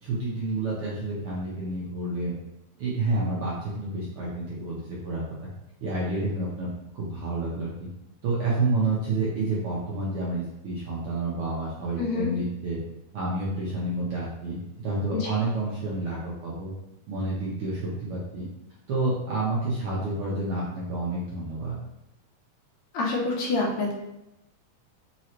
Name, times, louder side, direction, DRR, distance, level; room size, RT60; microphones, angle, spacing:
voice 1, 0.0-2.3 2.8-5.2 5.8-6.7 6.9-7.9 8.2-12.8 13.1-16.7 17.1-18.5 18.9-21.8, right 2 dB, 70° right, -6 dB, 1.4 m, -29 dB
voice 2, 12.0-12.3 15.1-15.3 22.9-23.9, left 3 dB, 75° left, -2 dB, 2.0 m, -27 dB
5.0 x 3.0 x 2.9 m, 0.89 s
omnidirectional pair, 3.3 m